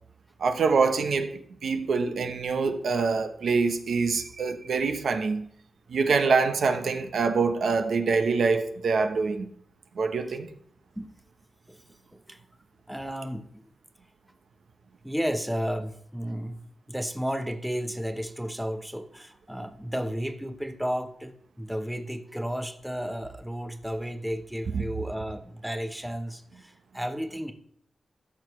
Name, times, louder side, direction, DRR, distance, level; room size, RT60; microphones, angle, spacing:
voice 1, 0.4-5.5 5.9-9.5 10.0-10.5, right 4 dB, 75° right, 0.9 m, -25 dB
voice 2, 12.9-13.6 15.0-16.6 16.9-27.5, equal, 5° right, 0.8 m, -33 dB
13.5 x 6.3 x 3.1 m
wide cardioid pair, 100°, 0 cm